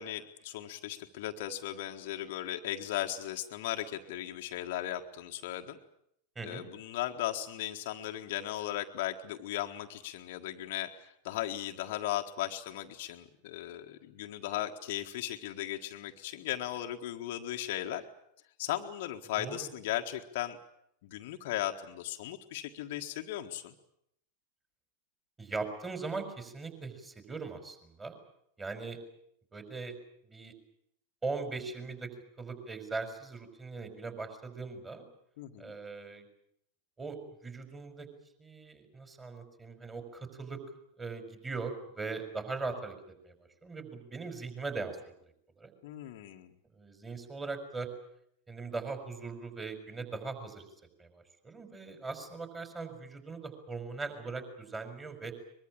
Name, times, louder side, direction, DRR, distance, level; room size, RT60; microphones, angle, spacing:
voice 1, 0.0-5.8 6.4-18.0 18.6-20.6 21.0-23.7 35.4-35.7 45.8-46.5, left 13 dB, 50° left, 4 dB, 1.6 m, -37 dB
voice 2, 19.4-19.7 25.4-28.2 28.6-29.0 29.5-29.9 30.2-30.5 31.2-32.1 32.4-35.0 35.6-36.3 37.0-37.2 37.4-38.1 38.4-40.6 41.0-43.0 43.2-43.3 43.6-45.0 45.6-45.7 46.7-47.9 48.5-50.6 51.0-55.3, right 4 dB, 15° right, 7 dB, 4.9 m, -40 dB
23.0 x 22.5 x 8.6 m, 0.73 s
figure-of-eight pair, 90°, 0 cm